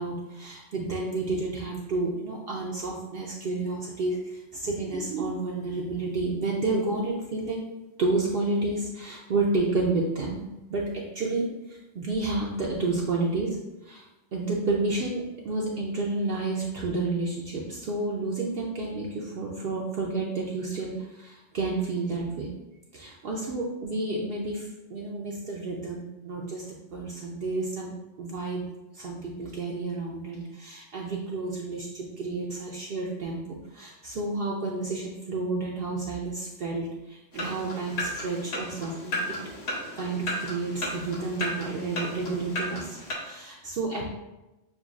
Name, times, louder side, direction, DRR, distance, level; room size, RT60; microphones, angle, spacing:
voice 1, 0.0-7.6 8.0-10.4 10.7-14.1 14.3-22.5 22.9-26.6 26.9-28.6 28.9-39.4 40.0-44.1, right 3 dB, 60° right, -3 dB, 0.7 m, -30 dB
sound 1, 37.3-43.1, left 1 dB, 60° left, 1.1 m, -34 dB
6.7 x 2.2 x 2.4 m, 1.0 s
omnidirectional pair, 1.3 m